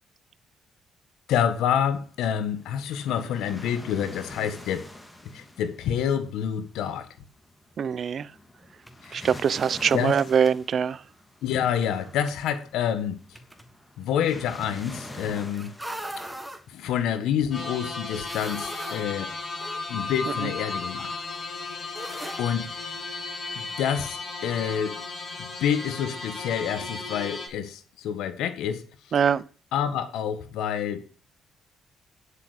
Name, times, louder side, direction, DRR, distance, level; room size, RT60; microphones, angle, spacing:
voice 1, 1.3-4.9 5.3-7.1 9.0-9.3 9.9-10.1 11.4-13.4 14.0-15.7 16.7-19.3 19.9-21.1 22.4-23.0 23.5-25.0 25.4-28.8 29.7-31.1, left 9 dB, 85° left, 1.4 m, -28 dB
sound 1, 1.5-17.2, left 1 dB, 10° left, 2.7 m, -46 dB
voice 2, 7.8-8.3 9.1-11.0 20.4-20.5 29.1-29.4, right 7 dB, 55° right, 0.6 m, -23 dB
sound 2, 8.9-10.6 12.3-12.4 13.3-13.7 15.5-16.6 18.0-19.8 20.2-20.3 21.9-22.4, right 1 dB, 5° right, 1.9 m, -40 dB
sound 3, 17.5-27.5, left 3 dB, 45° left, 6.6 m, -35 dB
10.5 x 8.3 x 5.0 m
cardioid pair, 90°, 0 cm